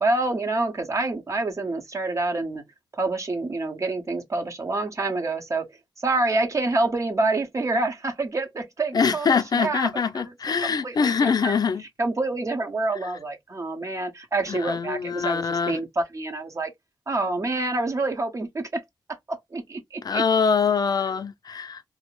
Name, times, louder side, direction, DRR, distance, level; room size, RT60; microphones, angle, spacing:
voice 1, 0.0-2.6 3.0-5.7 6.0-9.9 10.1-10.3 10.6-16.7 17.1-18.8 19.3-20.2 21.0-21.1, right 2 dB, 40° right, 0.7 m, -27 dB
voice 2, 8.9-11.8 14.5-15.8 20.0-21.8, left 6 dB, 55° left, 0.4 m, -24 dB
2.4 x 2.0 x 2.9 m
wide cardioid pair, 85°, 8 cm